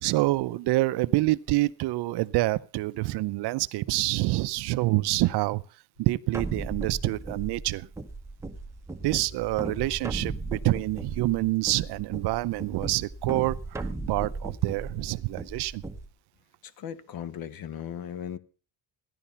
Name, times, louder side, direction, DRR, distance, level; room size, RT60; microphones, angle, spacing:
voice 1, 0.0-5.6 6.0-7.9 9.0-15.8, right 19 dB, 60° right, 0.6 m, -27 dB
sound 1, 6.3-16.1, right 3 dB, 5° right, 0.7 m, -37 dB
voice 2, 16.6-18.4, left 9 dB, 50° left, 1.0 m, -37 dB
15.5 x 11.0 x 5.6 m
cardioid pair, 165°, 46 cm